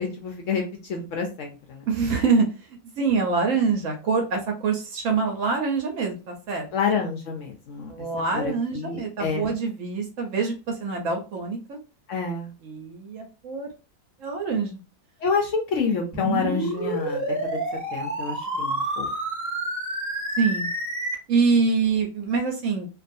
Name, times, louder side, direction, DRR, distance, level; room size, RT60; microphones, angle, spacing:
voice 1, 0.0-1.8 6.7-8.1 8.3-9.5 12.1-12.5 15.2-17.6 17.9-19.1, left 5 dB, 70° left, 3 dB, 0.8 m, -28 dB
voice 2, 1.9-2.5 3.0-6.7 7.9-11.8 12.6-13.7 14.2-14.8 20.4-20.7 21.3-22.9, right 4 dB, 65° right, 3 dB, 0.9 m, -25 dB
sound 1, 16.1-21.1, right 1 dB, 15° right, 0.7 m, -28 dB
2.5 x 2.3 x 2.5 m, 0.32 s
omnidirectional pair, 1.6 m